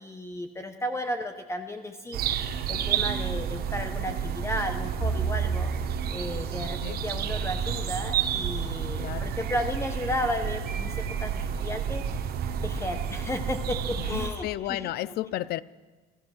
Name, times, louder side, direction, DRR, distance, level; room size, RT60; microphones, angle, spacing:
voice 1, 0.0-5.7 6.1-12.3 12.6-15.1, left 1 dB, 15° left, 0.9 m, -34 dB
sound 1, 2.1-14.3, right 8 dB, 65° right, 1.0 m, -30 dB
Bowed string instrument, 5.0-9.4, right 4 dB, 10° right, 3.8 m, -35 dB
voice 2, 9.0-9.3 14.0-15.6, left 14 dB, 70° left, 0.4 m, -33 dB
16.0 x 13.0 x 6.3 m
cardioid pair, 110°, 17 cm